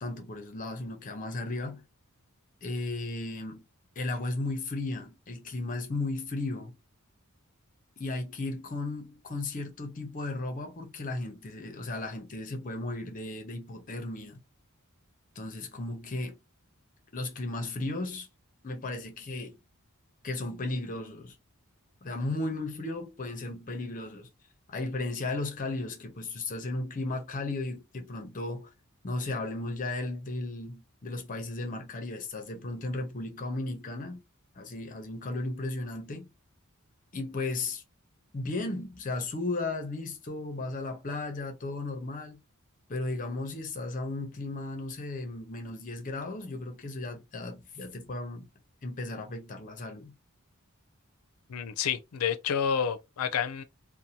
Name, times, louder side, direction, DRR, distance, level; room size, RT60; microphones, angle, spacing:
voice 1, 0.0-1.8 2.6-3.6 4.0-6.8 8.0-14.4 15.4-16.4 17.1-18.3 18.6-19.6 20.2-21.4 22.0-24.3 24.7-28.7 29.0-34.2 34.6-36.3 37.1-37.8 38.3-42.4 42.9-48.5 48.8-50.1, left 2 dB, 35° left, 0.6 m, -35 dB
voice 2, 51.5-53.6, left 7 dB, 80° left, 0.4 m, -29 dB
2.6 x 2.1 x 2.8 m
head